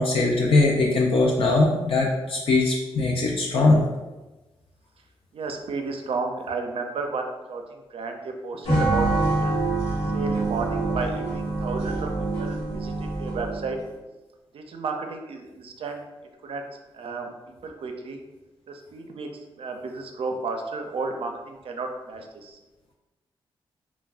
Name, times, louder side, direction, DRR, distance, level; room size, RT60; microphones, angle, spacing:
voice 1, 0.0-3.8, left 2 dB, 60° left, -2 dB, 0.4 m, -21 dB
voice 2, 5.3-9.6 10.1-13.8 14.5-16.0 16.4-16.6 16.9-18.2 18.7-19.3 19.6-22.6, right 4 dB, 65° right, 4 dB, 0.4 m, -33 dB
sound 1, 8.6-13.8, right 2 dB, 85° left, 1.1 m, -26 dB
2.3 x 2.1 x 3.4 m, 1.1 s
supercardioid pair, 45°, 10 cm